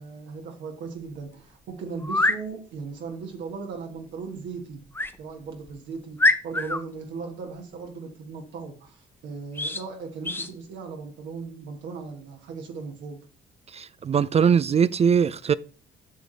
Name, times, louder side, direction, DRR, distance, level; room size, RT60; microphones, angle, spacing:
voice 1, 0.0-4.8 5.2-13.2, right 5 dB, 75° right, 1.6 m, -37 dB
sound 1, 1.1-1.2 2.0-2.4 4.9-5.2 5.7-5.8 6.2-6.8 9.5-9.8 10.2-10.5, left 2 dB, 10° left, 0.8 m, -24 dB
voice 2, 13.7-15.5, right 7 dB, 35° right, 0.4 m, -21 dB
8.3 x 6.1 x 3.9 m
cardioid pair, 80°, 19 cm